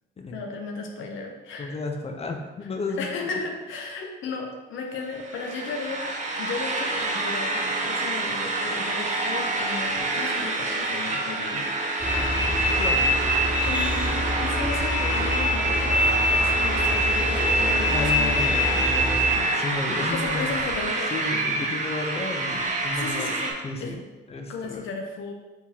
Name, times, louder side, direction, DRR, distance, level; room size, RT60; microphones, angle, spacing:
voice 1, 0.3-1.8 3.0-6.1 6.4-11.7 13.6-18.5 20.0-21.1 22.9-23.5 23.8-23.9 24.5-25.3, left 4 dB, 80° left, 2 dB, 0.6 m, -35 dB
voice 2, 1.6-3.3 12.1-13.3 17.9-20.6 21.1-24.0 24.3-24.9, left 3 dB, 30° left, 4 dB, 0.6 m, -33 dB
sound 1, 5.0-23.5, right 2 dB, 35° right, 0.8 m, -28 dB
sound 2, 12.0-19.4, left 1 dB, 5° right, 0.5 m, -24 dB
4.6 x 3.7 x 2.8 m, 1.2 s
cardioid pair, 90°, 20 cm